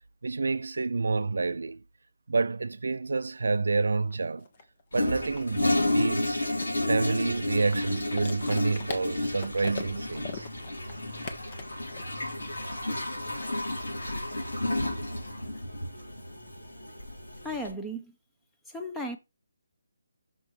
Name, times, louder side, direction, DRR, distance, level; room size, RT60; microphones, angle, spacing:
voice 1, 0.2-1.8 2.3-4.5 4.9-6.4 6.8-10.5, right 3 dB, 70° right, 0.5 m, -28 dB
sound 1, 3.8-3.9 4.1-12.3, left 4 dB, 40° left, 1.3 m, -41 dB
Toilet flush, 4.9-17.7, left 1 dB, 85° left, 3.6 m, -31 dB
voice 2, 17.4-18.1 18.7-19.2, equal, 5° left, 0.9 m, -35 dB
6.3 x 5.1 x 4.5 m
figure-of-eight pair, 155°, 0 cm